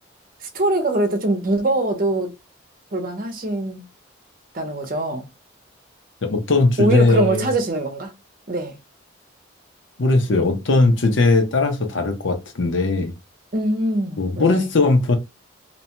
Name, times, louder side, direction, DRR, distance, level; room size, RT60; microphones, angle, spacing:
voice 1, 0.4-2.4 2.9-3.8 4.5-5.3 6.8-8.1 8.5-8.8 13.5-14.7, right 2 dB, 45° right, 0.7 m, -23 dB
voice 2, 6.2-7.5 10.0-13.1 14.2-15.2, left 3 dB, 70° left, 0.7 m, -18 dB
2.8 x 2.2 x 2.8 m
head